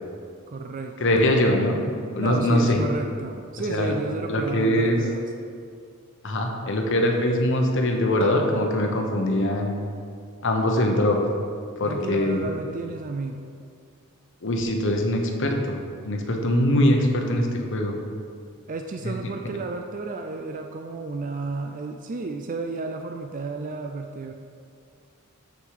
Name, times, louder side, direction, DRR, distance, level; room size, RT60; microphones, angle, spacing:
voice 1, 0.5-1.3 2.2-5.3 11.8-13.4 18.7-24.3, right 3 dB, 35° right, 4 dB, 0.4 m, -32 dB
voice 2, 1.0-1.8 2.1-2.9 3.7-3.9 4.3-5.0 6.2-9.8 10.4-11.2 11.8-12.5 14.4-15.8 16.0-18.0 19.0-19.2, left 1 dB, 60° left, 2 dB, 1.0 m, -22 dB
7.3 x 6.7 x 4.9 m, 2.3 s
head